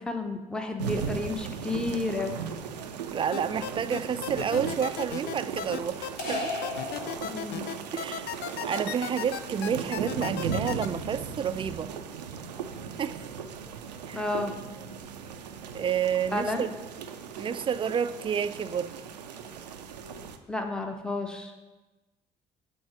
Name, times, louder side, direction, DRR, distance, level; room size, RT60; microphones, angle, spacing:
voice 1, 0.1-2.4 7.0-7.7 14.1-14.5 16.3-16.7 20.5-21.5, left 2 dB, 5° left, 0.7 m, -31 dB
sound 1, 0.8-20.4, right 6 dB, 80° right, 0.5 m, -37 dB
voice 2, 3.1-6.6 7.9-8.3 8.6-11.9 13.0-13.2 14.1-14.2 15.7-16.7 17.4-19.0, right 7 dB, 25° right, 0.4 m, -30 dB
sound 2, 3.3-10.9, left 10 dB, 50° left, 0.4 m, -35 dB
sound 3, 6.2-7.9, left 3 dB, 75° left, 1.2 m, -35 dB
6.3 x 4.3 x 5.9 m
figure-of-eight pair, 50°, 21 cm